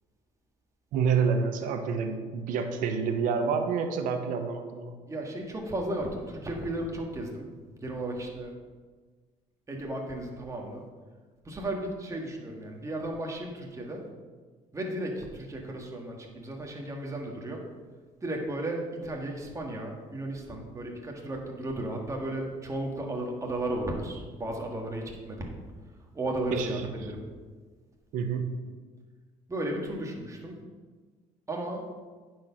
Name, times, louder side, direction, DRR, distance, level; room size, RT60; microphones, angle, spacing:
voice 1, 0.9-4.9 26.5-26.9 28.1-28.5, right 6 dB, 80° right, 6 dB, 1.0 m, -28 dB
voice 2, 5.1-7.5 7.8-8.5 9.7-10.8 11.5-14.1 14.7-17.7 18.2-25.5 26.1-27.2 29.5-30.6 31.5-31.9, right 1 dB, 25° right, 0 dB, 1.8 m, -34 dB
9.2 x 4.8 x 5.7 m, 1.4 s
cardioid pair, 90°, 13 cm